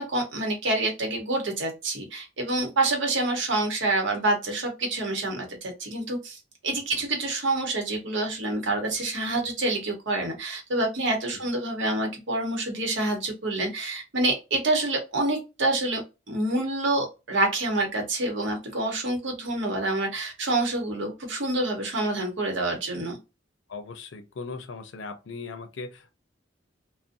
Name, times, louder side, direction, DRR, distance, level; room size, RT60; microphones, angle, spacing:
voice 1, 0.0-6.4 6.6-16.0 16.3-23.2, right 2 dB, 75° right, 0.9 m, -27 dB
voice 2, 6.7-7.0 11.3-11.5 23.7-26.2, left 4 dB, 80° left, 0.5 m, -39 dB
2.5 x 2.1 x 2.5 m
head